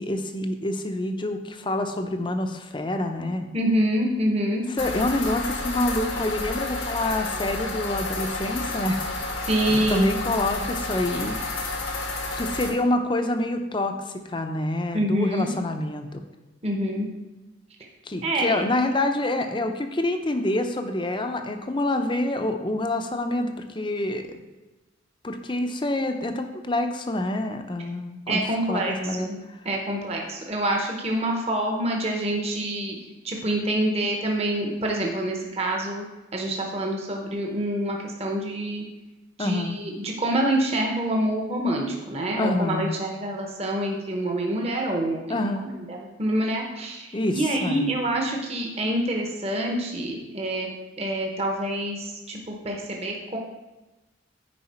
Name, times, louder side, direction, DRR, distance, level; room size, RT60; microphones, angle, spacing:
voice 1, 0.0-3.5 4.8-9.0 9.8-11.5 12.3-14.0 14.3-16.2 18.1-24.4 25.2-28.4 28.7-29.6 39.4-39.8 42.4-43.0 45.3-45.7 47.1-47.9, left 1 dB, 25° left, 6 dB, 0.6 m, -27 dB
voice 2, 3.5-4.7 9.4-10.1 14.9-15.5 16.6-17.1 18.2-18.6 28.3-33.0 33.2-36.0 36.3-38.8 39.4-45.5 45.9-50.7 51.0-53.4, right 1 dB, 30° right, 0 dB, 0.9 m, -26 dB
sound 1, 4.8-12.7, left 2 dB, 85° left, 1.6 m, -30 dB
9.6 x 4.8 x 4.3 m, 1.1 s
head